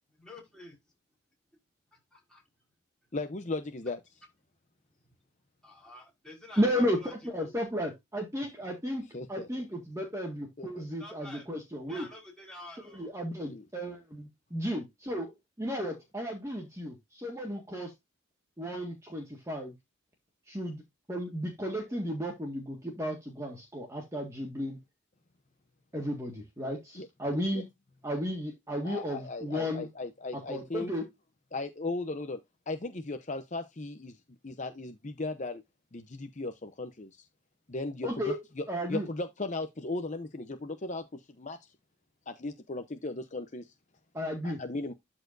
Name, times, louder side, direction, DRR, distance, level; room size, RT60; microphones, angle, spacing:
voice 1, 0.2-0.8 2.1-2.4 5.6-7.1 7.4-7.5 11.0-11.5 11.9-13.1, left 2 dB, 5° left, 4.6 m, -48 dB
voice 2, 3.1-4.0 9.1-9.5 10.6-10.9 13.5-13.6 27.0-27.6 28.8-30.9 31.5-32.4 32.7-34.1 34.4-35.6 35.9-37.1 37.7-41.7 42.3-43.7 44.4-44.9, left 2 dB, 35° left, 0.7 m, -37 dB
voice 3, 6.6-9.0 9.3-12.1 12.9-17.9 18.6-19.7 20.5-20.8 21.1-24.8 25.9-27.7 28.0-29.9 30.3-31.0 38.0-38.4 38.7-39.1 44.1-44.6, equal, 15° right, 1.7 m, -34 dB
12.5 x 4.4 x 2.6 m
head